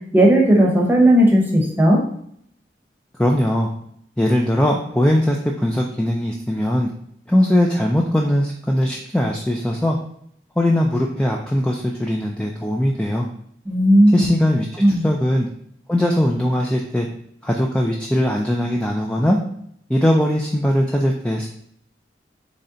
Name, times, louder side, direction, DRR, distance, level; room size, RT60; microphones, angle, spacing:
voice 1, 0.1-2.0 13.7-14.3 14.8-15.0, right 1 dB, 10° right, -1 dB, 0.8 m, -14 dB
voice 2, 3.2-3.7 4.2-6.9 7.3-10.0 10.6-13.3 14.1-15.5 15.9-17.1 17.4-19.4 19.9-21.5, left 1 dB, 5° left, -1 dB, 0.3 m, -20 dB
4.0 x 3.2 x 3.8 m, 0.68 s
head